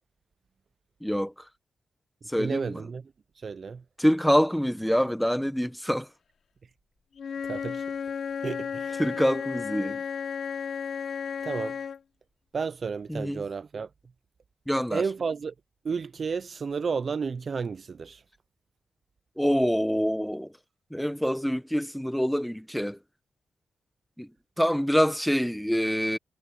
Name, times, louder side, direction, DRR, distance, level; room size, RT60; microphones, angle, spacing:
voice 1, 1.0-1.3 2.3-2.8 4.0-6.1 9.0-10.0 13.1-13.4 14.7-15.0 19.4-20.5 20.9-23.0 24.2-24.3 24.6-26.2, equal, ahead, 1.2 m, -25 dB
voice 2, 2.4-3.0 3.4-3.8 7.4-7.8 8.4-9.0 11.4-11.8 12.5-13.9 14.9-15.5 15.8-18.2, right 5 dB, 45° right, 0.4 m, -32 dB
Wind instrument woodwind instrument, 7.2-12.0, left 6 dB, 60° left, 2.6 m, -33 dB
wide cardioid pair, 125°, 0 cm